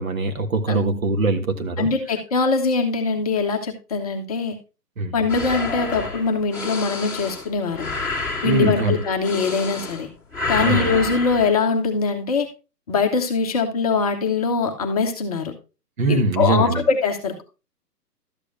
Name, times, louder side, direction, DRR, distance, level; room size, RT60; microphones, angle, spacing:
voice 1, 0.0-1.9 5.0-5.1 8.4-9.0 10.6-11.0 16.0-16.8, right 3 dB, 55° right, 1.6 m, -22 dB
voice 2, 1.8-4.6 5.1-7.9 8.4-10.1 10.5-12.5 12.9-15.5 16.1-17.4, left 4 dB, 25° left, 0.9 m, -22 dB
sound 1, 5.3-10.1 10.3-11.5, left 3 dB, 5° right, 1.9 m, -29 dB
12.5 x 8.0 x 2.6 m
figure-of-eight pair, 135°, 48 cm